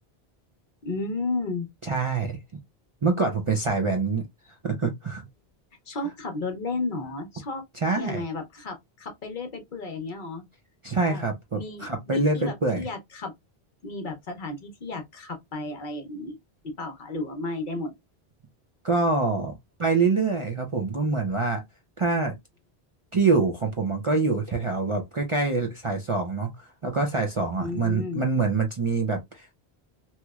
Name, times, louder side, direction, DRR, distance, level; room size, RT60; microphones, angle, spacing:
voice 1, 0.8-1.7 5.9-7.6 7.9-10.4 11.1-11.2 11.5-13.3 13.8-16.4 16.6-17.9 27.6-28.2, left 3 dB, 55° left, 0.8 m, -33 dB
voice 2, 1.8-2.4 3.0-4.2 4.6-5.2 7.7-8.2 10.8-12.9 18.8-19.5 19.8-21.6 22.0-22.3 23.1-29.5, right 3 dB, 40° right, 0.5 m, -25 dB
3.0 x 2.9 x 2.3 m
omnidirectional pair, 1.1 m